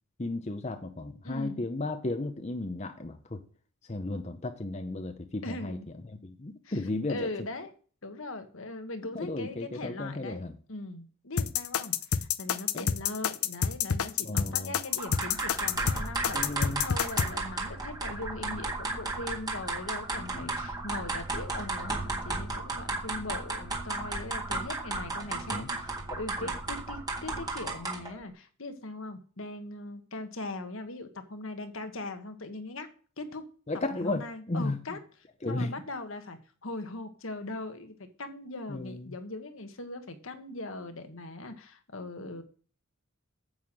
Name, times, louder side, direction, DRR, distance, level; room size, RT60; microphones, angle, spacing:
voice 1, 0.2-3.4 3.8-5.8 6.2-7.3 9.1-10.6 12.7-12.9 14.2-14.8 16.3-16.9 20.3-20.6 25.5-25.7 26.1-26.5 33.7-35.0 35.4-35.7 38.7-39.2, left 2 dB, 30° left, 7 dB, 0.7 m, -34 dB
voice 2, 1.2-1.6 5.4-5.9 6.6-6.8 7.1-7.7 8.0-10.4 10.7-32.9 33.2-33.5 33.9-35.0 35.5-42.4, left 2 dB, 70° left, 7 dB, 1.4 m, -40 dB
sound 1, 11.4-17.3, left 7 dB, 90° left, 0.7 m, -28 dB
sound 2, 15.0-28.2, right 3 dB, 20° right, 1.7 m, -34 dB
9.6 x 5.7 x 7.6 m, 0.42 s
head